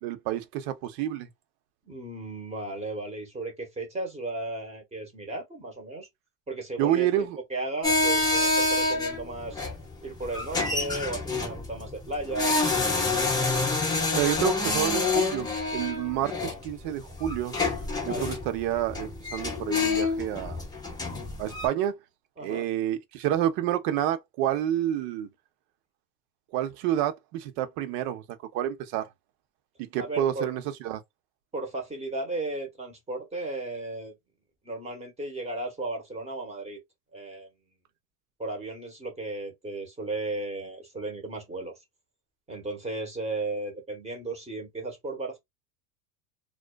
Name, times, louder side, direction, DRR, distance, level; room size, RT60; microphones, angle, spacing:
voice 1, 0.0-1.3 6.8-7.4 14.1-17.6 18.0-20.6 21.4-22.0 22.4-25.3 26.5-28.2 28.5-29.1 29.8-31.0, right 11 dB, 55° right, 0.7 m, -29 dB
voice 2, 1.9-6.1 6.5-7.1 7.5-9.6 10.0-12.6 18.0-18.3 22.4-22.6 30.0-30.6 31.5-34.1 34.6-36.8 37.1-37.5 38.4-41.8 42.5-45.4, right 2 dB, 15° right, 0.9 m, -35 dB
sound 1, 7.8-21.7, left 3 dB, 10° left, 0.6 m, -28 dB
2.4 x 2.3 x 2.2 m
supercardioid pair, 135°, 48 cm